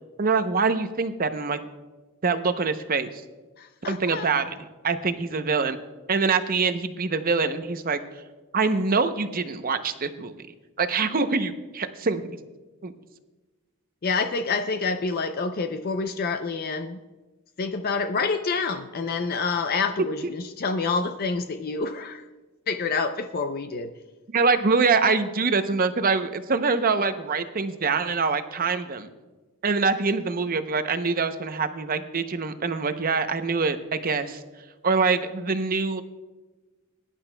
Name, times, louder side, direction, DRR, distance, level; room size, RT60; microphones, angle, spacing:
voice 1, 0.2-1.6 2.2-3.1 3.9-4.6 4.8-5.8 6.1-8.0 8.5-10.5 10.8-12.2 12.8-12.9 24.3-29.1 29.6-34.4 34.8-36.0, right 4 dB, 40° right, 9 dB, 0.7 m, -24 dB
voice 2, 3.6-4.3 14.0-17.0 17.6-22.2 22.7-23.9, left 4 dB, 45° left, 7 dB, 0.5 m, -27 dB
21.5 x 10.5 x 2.2 m, 1.2 s
head